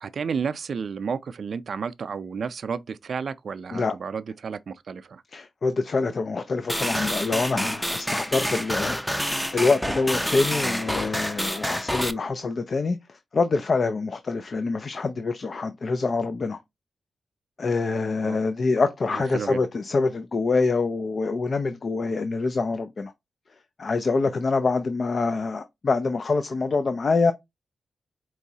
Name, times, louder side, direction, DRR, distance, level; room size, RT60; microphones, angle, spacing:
voice 1, 0.0-5.2 18.2-18.4 19.1-19.6, right 6 dB, 65° right, 0.4 m, -32 dB
voice 2, 5.3-16.6 17.6-23.1 23.8-27.3, left 4 dB, 55° left, 0.4 m, -25 dB
sound 1, 6.7-12.1, equal, 5° left, 0.5 m, -28 dB
4.6 x 3.0 x 2.7 m
cardioid pair, 65°, 0 cm